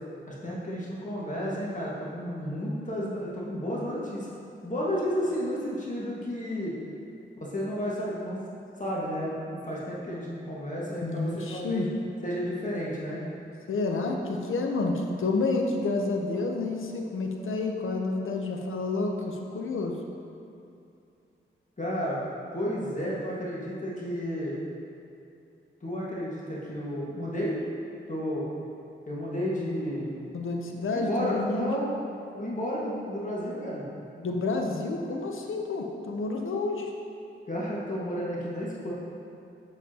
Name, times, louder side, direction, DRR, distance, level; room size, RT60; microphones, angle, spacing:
voice 1, 0.4-4.3 4.6-6.7 7.4-8.4 8.8-11.8 12.2-13.2 21.8-22.2 22.5-24.6 25.8-27.6 28.1-28.5 29.1-30.2 30.9-31.9 32.3-33.8 37.5-38.9, equal, 40° left, -6 dB, 1.7 m, -32 dB
voice 2, 11.0-11.9 13.7-20.0 30.3-31.7 34.2-36.9, left 3 dB, 75° left, 2 dB, 0.8 m, -29 dB
7.4 x 7.0 x 2.9 m, 2.7 s
cardioid pair, 60°, 21 cm